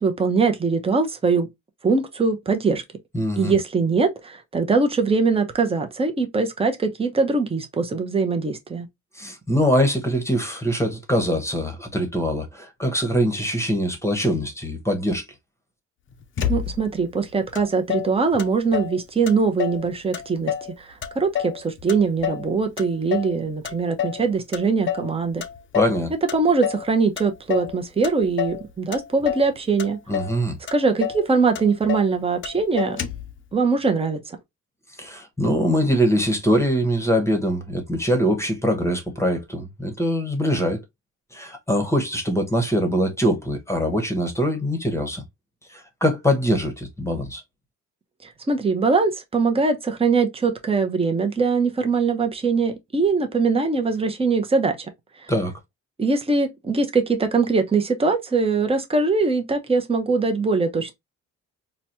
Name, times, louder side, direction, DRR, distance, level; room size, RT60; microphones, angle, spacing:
voice 1, 0.0-1.5 1.8-2.8 3.4-8.9 16.5-25.4 26.3-30.0 30.7-33.0 33.5-34.4 48.2-54.8 56.0-60.9, right 4 dB, 20° right, 0.8 m, -22 dB
voice 2, 3.1-3.5 9.2-15.2 25.7-26.1 30.1-30.6 35.0-40.8 41.3-45.2 45.7-47.4 55.3-55.5, equal, 10° left, 1.0 m, -23 dB
Motor vehicle (road), 16.4-17.0 17.5-17.6 17.9-19.0 19.3-19.9 20.1-20.7 21.0-22.5 22.8-23.4 23.6-24.2 24.5-25.1 25.4-26.0 26.3-26.9 27.2-27.7 28.0-28.6 28.9-29.5 29.8-30.4 30.7-30.8 31.0-31.3 31.5-32.1 32.4-32.5 32.8-33.3, left 9 dB, 40° left, 0.6 m, -28 dB
4.0 x 2.3 x 2.8 m
cardioid pair, 90°, 30 cm